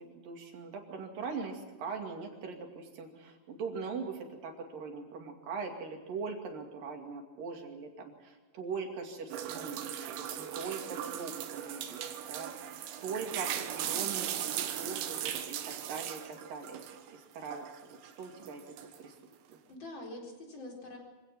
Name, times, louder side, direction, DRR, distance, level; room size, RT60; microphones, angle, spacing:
voice 1, 0.0-16.8 17.1-18.6 19.0-19.1 19.5-19.6, right 5 dB, 55° right, 3 dB, 3.8 m, -41 dB
sound 1, 9.3-17.1 17.5-19.1, right 10 dB, 80° right, 3.5 m, -38 dB
voice 2, 13.8-14.2 18.9-19.1 19.7-21.0, left 2 dB, 25° left, 0 dB, 4.6 m, -46 dB
25.0 x 17.5 x 6.0 m, 1.3 s
omnidirectional pair, 5.1 m